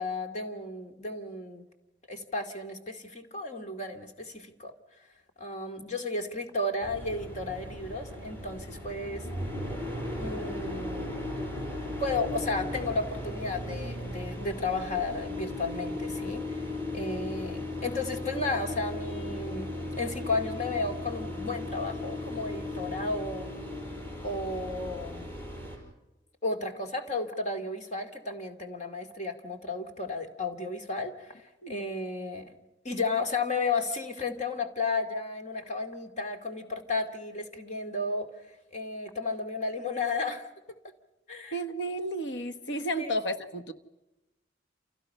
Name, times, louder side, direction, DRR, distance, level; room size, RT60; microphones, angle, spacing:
voice 1, 0.0-1.7 2.1-4.7 5.4-9.3 10.2-11.1 12.0-16.7 16.9-19.7 20.0-23.5 24.2-25.3 26.4-32.5 32.8-38.3 38.7-40.5 41.3-41.6 43.0-43.1, left 3 dB, 35° left, 4 dB, 2.2 m, -33 dB
sound 1, 6.8-25.8, left 1 dB, 10° left, 5.9 m, -36 dB
voice 2, 41.5-43.7, right 1 dB, 75° left, 9 dB, 1.4 m, -32 dB
29.5 x 28.0 x 5.6 m, 1.0 s
head